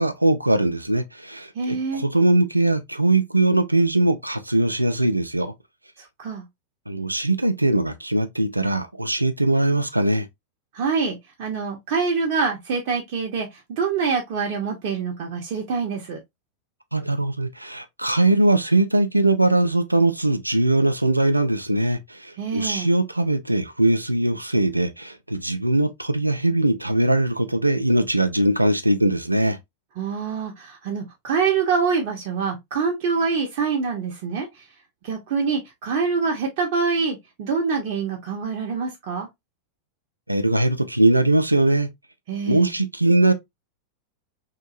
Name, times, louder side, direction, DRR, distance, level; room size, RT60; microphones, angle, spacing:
voice 1, 0.0-5.5 6.9-10.3 16.9-29.6 40.3-41.9 42.5-43.3, right 2 dB, 85° right, 0.3 m, -21 dB
voice 2, 1.6-2.0 6.0-6.4 10.7-16.2 22.4-22.9 30.0-34.5 35.0-39.3 42.3-42.7, right 5 dB, 45° right, 0.7 m, -25 dB
2.8 x 2.6 x 2.4 m
figure-of-eight pair, 90°, 0 cm